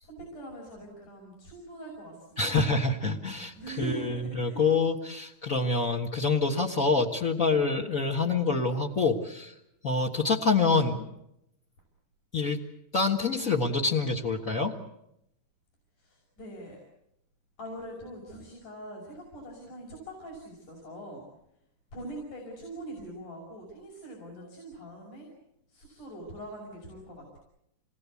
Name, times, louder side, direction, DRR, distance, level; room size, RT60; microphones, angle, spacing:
voice 1, 0.0-2.7 3.5-4.6 16.0-16.8 17.6-21.2 21.9-25.3 25.7-27.4, right 1 dB, 65° left, -2 dB, 7.2 m, -43 dB
voice 2, 2.4-9.5 9.8-11.1 12.3-12.6 12.9-14.7, left 4 dB, 40° left, -1 dB, 1.2 m, -26 dB
28.0 x 20.5 x 8.4 m, 0.83 s
omnidirectional pair, 3.9 m